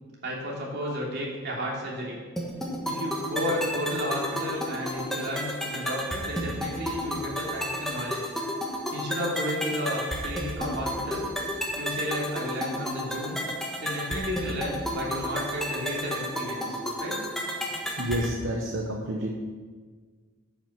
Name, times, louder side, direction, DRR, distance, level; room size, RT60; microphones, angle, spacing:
voice 1, 0.2-2.2 2.8-8.2 8.9-11.3 11.7-13.4 13.8-17.2, equal, 55° right, -4 dB, 3.0 m, -32 dB
sound 1, 2.4-18.4, equal, ahead, 1.4 m, -32 dB
voice 2, 18.0-19.3, equal, 70° right, -1 dB, 1.1 m, -29 dB
9.8 x 6.1 x 7.4 m, 1.5 s
head